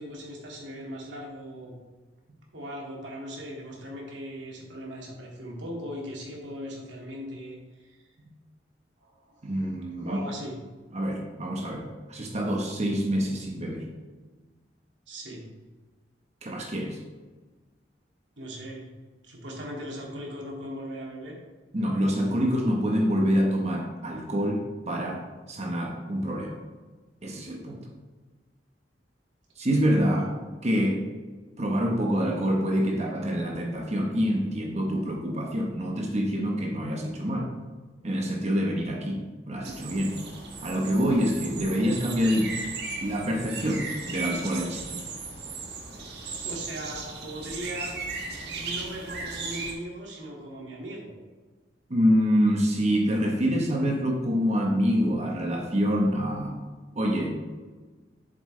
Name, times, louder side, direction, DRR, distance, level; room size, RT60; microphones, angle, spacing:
voice 1, 0.0-1.7 2.5-8.0 9.0-9.7 10.0-10.6 15.1-15.4 18.4-18.9 19.2-21.3 46.4-48.0 48.6-51.1, equal, 80° right, -2 dB, 2.3 m, -39 dB
voice 2, 9.4-10.2 10.9-13.9 16.4-17.0 21.7-25.2 25.5-26.6 27.2-27.8 29.6-30.3 30.6-31.0 31.6-37.5 38.0-40.2 40.6-42.6 43.0-44.9 51.9-56.6 56.9-57.3, equal, 40° right, 1 dB, 1.1 m, -26 dB
sound 1, 39.6-49.7, right 4 dB, 65° right, 1.4 m, -36 dB
7.7 x 7.5 x 3.3 m, 1.3 s
head